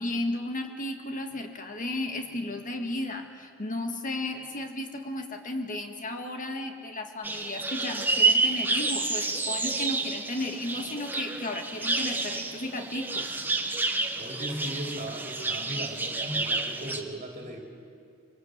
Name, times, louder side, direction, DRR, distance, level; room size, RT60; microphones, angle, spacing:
voice 1, 0.0-13.3, left 1 dB, 35° left, 5 dB, 1.8 m, -34 dB
sound 1, 7.2-17.0, right 3 dB, 10° right, 1.0 m, -29 dB
voice 2, 14.2-17.6, right 1 dB, 35° right, 1 dB, 3.3 m, -37 dB
24.0 x 19.0 x 8.0 m, 2.4 s
head